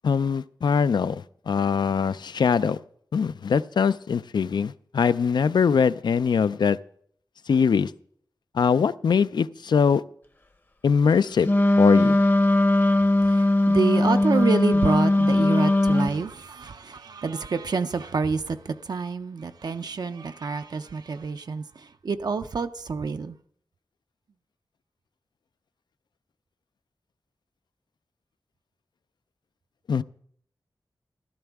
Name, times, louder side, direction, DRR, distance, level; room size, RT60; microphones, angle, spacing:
voice 1, 0.0-2.8 3.1-6.8 7.5-7.9 8.5-10.0 10.8-11.5 11.8-12.2 29.9-30.0, left 6 dB, 75° left, 0.4 m, -22 dB
Wind instrument woodwind instrument, 11.4-16.2, left 1 dB, 30° left, 0.7 m, -19 dB
voice 2, 13.7-21.6 22.0-23.3, right 4 dB, 65° right, 0.5 m, -27 dB
14.5 x 12.0 x 3.5 m
wide cardioid pair, 105°, 8 cm